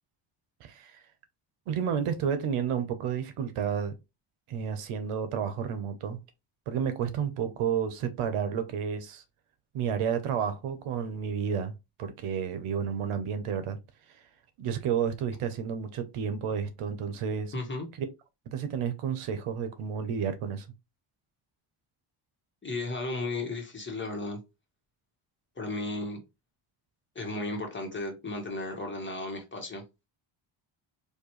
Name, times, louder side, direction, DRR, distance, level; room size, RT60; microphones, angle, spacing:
voice 1, 0.6-1.0 1.7-3.9 4.5-6.2 6.7-9.2 9.7-13.8 14.6-17.5 18.5-20.7, right 7 dB, 85° right, 0.9 m, -31 dB
voice 2, 17.5-17.9 22.6-24.4 25.6-26.2 27.1-29.8, left 2 dB, 25° left, 1.5 m, -34 dB
4.4 x 2.8 x 3.1 m
cardioid pair, 125°, 49 cm